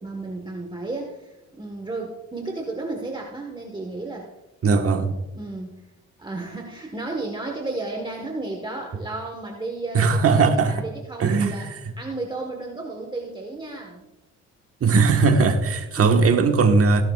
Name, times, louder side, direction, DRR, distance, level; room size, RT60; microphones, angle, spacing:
voice 1, 0.0-4.3 4.7-5.8 6.2-11.7 12.0-14.1 16.0-16.1, right 2 dB, 15° right, 1.4 m, -33 dB
voice 2, 4.6-5.1 9.9-10.9 11.2-11.8 14.8-17.0, right 4 dB, 50° right, 1.4 m, -19 dB
17.0 x 11.5 x 2.4 m
cardioid pair, 90°, 30 cm